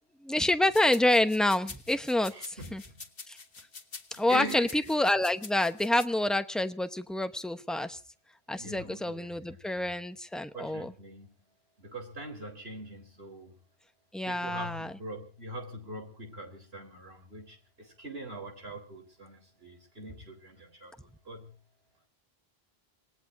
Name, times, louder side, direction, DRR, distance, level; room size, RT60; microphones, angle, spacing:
voice 1, 0.2-2.8 3.3-3.4 4.2-8.0 8.5-10.9 14.1-14.9, left 1 dB, ahead, 9 dB, 0.9 m, -28 dB
sound 1, 0.7-6.1, left 4 dB, 65° left, 1.7 m, -46 dB
voice 2, 2.3-3.0 4.1-4.9 8.6-9.9 10.5-11.3 11.8-13.5 14.3-21.5, right 1 dB, 75° right, 4 dB, 4.3 m, -43 dB
27.0 x 19.0 x 2.7 m, 0.37 s
omnidirectional pair, 1.0 m